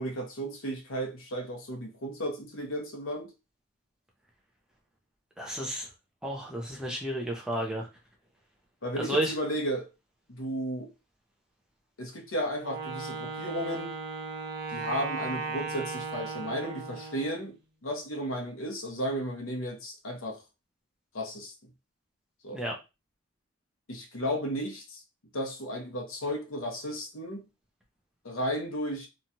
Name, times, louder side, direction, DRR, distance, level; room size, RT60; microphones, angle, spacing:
voice 1, 0.0-3.3 8.8-9.9 10.3-10.9 12.0-13.9 14.7-20.4 21.1-21.5 22.4-22.6 23.9-25.0 25.3-27.4 28.2-29.1, equal, 80° left, 0.9 m, -34 dB
voice 2, 5.4-5.9 6.2-7.9 9.0-9.3 22.5-22.8, right 1 dB, 5° right, 0.6 m, -31 dB
Wind instrument woodwind instrument, 12.6-17.4, right 4 dB, 50° right, 0.6 m, -36 dB
3.0 x 2.3 x 2.7 m
head